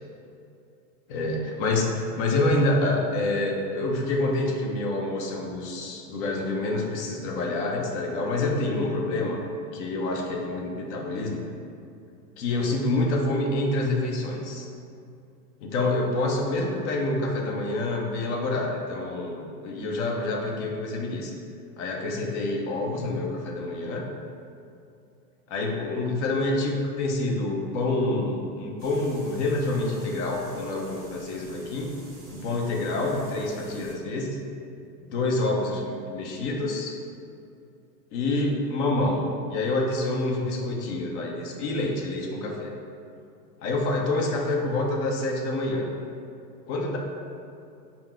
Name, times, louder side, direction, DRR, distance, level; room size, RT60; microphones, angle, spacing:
voice 1, 1.1-9.4 9.7-11.5 12.4-14.7 15.6-21.3 21.8-24.1 25.5-31.9 32.3-34.4 35.1-36.9 38.1-42.7 43.6-45.9 46.7-47.0, left 2 dB, 45° left, 0 dB, 0.6 m, -27 dB
sound 1, 28.8-33.9, right 1 dB, 20° right, 0.9 m, -49 dB
4.3 x 2.0 x 3.8 m, 2.5 s
hypercardioid pair, 130°, 49 cm